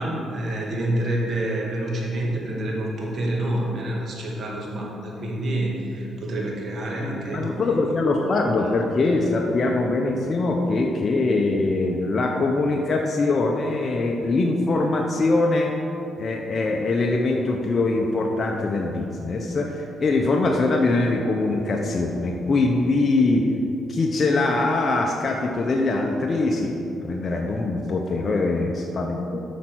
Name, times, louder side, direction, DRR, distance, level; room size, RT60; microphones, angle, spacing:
voice 1, 0.0-7.9, right 1 dB, 55° right, -2 dB, 2.1 m, -27 dB
voice 2, 7.0-15.7 16.2-23.5 23.9-29.4, left 2 dB, 40° left, 1 dB, 0.8 m, -23 dB
8.3 x 5.7 x 6.2 m, 2.8 s
cardioid pair, 90°, 0 cm